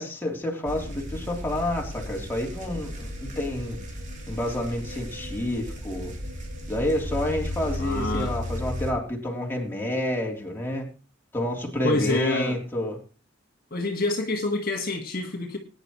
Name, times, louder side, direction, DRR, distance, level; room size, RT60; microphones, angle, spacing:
voice 1, 0.0-3.8 4.3-6.1 6.7-10.8 11.3-13.0, left 1 dB, 10° left, -2 dB, 3.4 m, -29 dB
sound 1, 0.7-8.9, left 1 dB, 40° right, 3.2 m, -35 dB
voice 2, 7.8-8.3 11.8-12.6 13.7-15.6, left 2 dB, 50° left, 2 dB, 1.7 m, -27 dB
20.0 x 10.0 x 3.1 m, 0.35 s
head